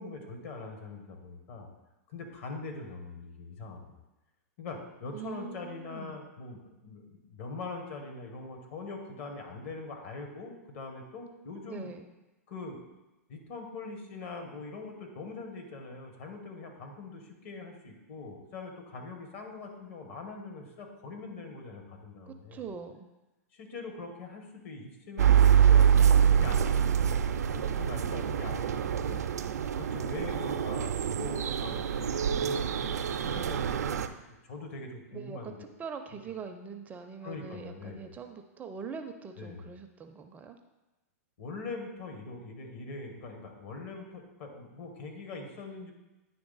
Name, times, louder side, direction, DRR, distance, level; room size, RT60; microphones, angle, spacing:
voice 1, 0.0-1.7 2.1-3.9 4.6-11.9 12.5-12.8 13.3-22.7 23.5-29.2 29.8-32.9 33.2-35.6 37.2-38.1 39.4-39.6 41.4-45.9, left 3 dB, 55° left, 3 dB, 1.4 m, -42 dB
voice 2, 5.1-6.2 11.6-12.0 22.2-23.1 35.1-40.6, right 6 dB, 20° right, 6 dB, 0.4 m, -43 dB
sound 1, 25.2-34.1, right 8 dB, 85° right, 0.4 m, -25 dB
9.8 x 3.3 x 3.9 m, 1.0 s
hypercardioid pair, 125°, 8 cm